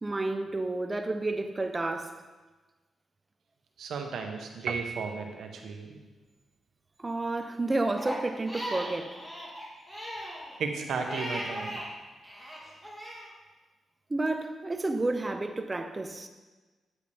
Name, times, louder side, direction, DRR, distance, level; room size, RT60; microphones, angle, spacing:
voice 1, 0.0-2.2 7.0-9.2 14.1-16.3, right 2 dB, 25° right, 0.8 m, -31 dB
voice 2, 3.8-6.0 10.6-11.8, right 5 dB, 80° right, 1.2 m, -35 dB
Piano, 4.7-5.6, right 5 dB, 65° right, 0.5 m, -36 dB
Crying sobbing, 8.0-11.9 12.2-13.3, equal, 5° left, 3.0 m, -38 dB
9.8 x 8.2 x 3.5 m
cardioid pair, 70°, 0 cm